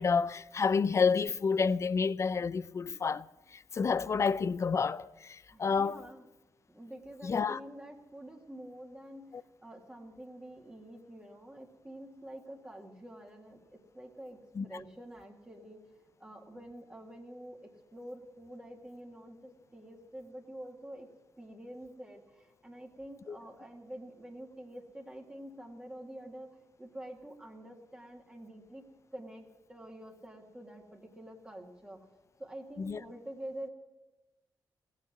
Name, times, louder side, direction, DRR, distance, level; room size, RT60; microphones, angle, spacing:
voice 1, 0.0-3.2 3.7-6.0 7.2-7.6 14.6-14.7 23.3-23.4 32.8-33.0, left 5 dB, 40° left, 0.5 m, -29 dB
voice 2, 5.5-6.3 6.7-9.3 9.6-15.8 16.2-21.1 21.4-32.1 32.4-33.7, right 1 dB, 15° right, 2.0 m, -47 dB
16.0 x 8.3 x 9.6 m
cardioid pair, 85°, 7 cm